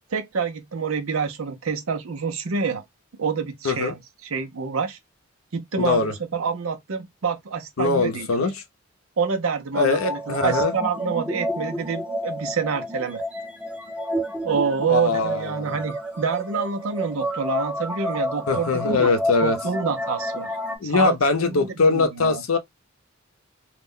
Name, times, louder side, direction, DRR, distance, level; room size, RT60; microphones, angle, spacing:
voice 1, 0.1-2.8 3.2-5.0 5.5-8.5 9.2-13.2 14.4-19.1 19.4-20.5 20.8-21.2 21.5-22.4, right 5 dB, 80° right, 0.6 m, -27 dB
voice 2, 5.8-6.1 7.8-8.5 9.7-10.7 14.9-15.7 18.5-19.6 20.8-22.6, left 4 dB, 85° left, 0.6 m, -22 dB
sound 1, 9.8-20.8, equal, 5° right, 0.7 m, -30 dB
2.3 x 2.1 x 3.6 m
head